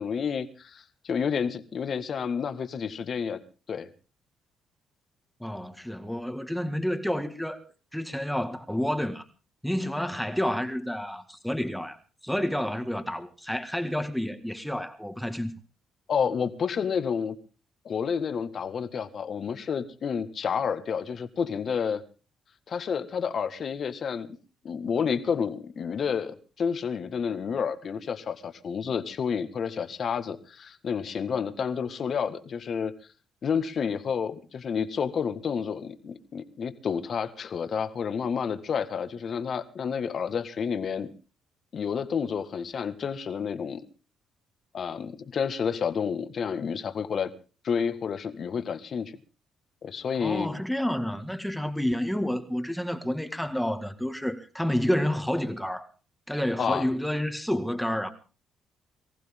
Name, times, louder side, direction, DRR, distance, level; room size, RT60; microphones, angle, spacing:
voice 1, 0.0-3.4 3.7-3.9 16.1-17.4 17.9-22.0 22.7-24.3 24.6-32.9 33.4-41.1 41.7-43.8 44.7-47.3 47.6-49.1 49.8-50.5 56.6-56.9, left 6 dB, 55° left, 1.8 m, -30 dB
voice 2, 5.4-7.6 7.9-9.2 9.6-12.0 12.2-15.5 50.2-55.9 56.3-58.1, equal, ahead, 1.9 m, -29 dB
23.5 x 15.0 x 3.7 m
cardioid pair, 90°, 0 cm